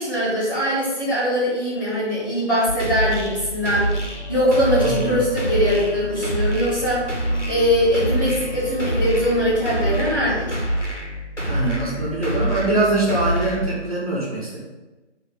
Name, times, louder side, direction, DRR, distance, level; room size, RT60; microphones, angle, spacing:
voice 1, 0.0-3.9 4.3-7.0 7.4-10.6, equal, 15° left, -11 dB, 1.5 m, -21 dB
sound 1, 2.7-13.6, right 1 dB, 85° left, 2.1 m, -27 dB
sound 2, 3.9-10.7, equal, 40° left, 0.5 m, -33 dB
voice 2, 4.8-5.2 11.4-14.6, right 2 dB, 30° right, -6 dB, 2.2 m, -23 dB
8.4 x 4.1 x 5.3 m, 1.1 s
figure-of-eight pair, 160°, 35 cm